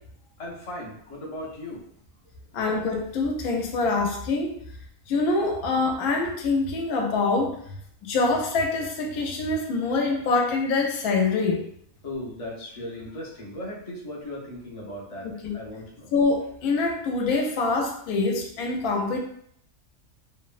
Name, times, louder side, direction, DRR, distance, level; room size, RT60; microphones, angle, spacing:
voice 1, 0.4-1.9 5.7-5.9 12.0-16.1, left 1 dB, 55° left, -3 dB, 0.4 m, -37 dB
voice 2, 2.5-4.6 5.1-7.6 8.0-11.6 15.2-15.5 16.1-19.2, left 3 dB, 90° left, 2 dB, 1.1 m, -25 dB
2.9 x 2.1 x 2.3 m, 0.67 s
omnidirectional pair, 1.5 m